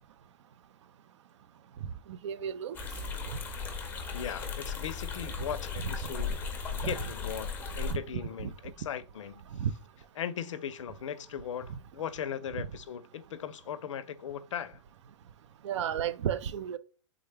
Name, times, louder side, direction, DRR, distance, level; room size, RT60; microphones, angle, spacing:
voice 1, 2.1-2.8 5.8-5.9 6.8-6.9 7.9-8.0 8.4-8.5 9.6-9.7 15.6-16.8, right 9 dB, 70° right, 0.4 m, -32 dB
sound 1, 2.7-7.9, left 5 dB, 10° left, 0.6 m, -36 dB
voice 2, 4.1-6.3 6.7-9.4 10.2-14.8, left 8 dB, 90° left, 0.5 m, -38 dB
3.6 x 2.2 x 3.3 m
hypercardioid pair, 145°, 16 cm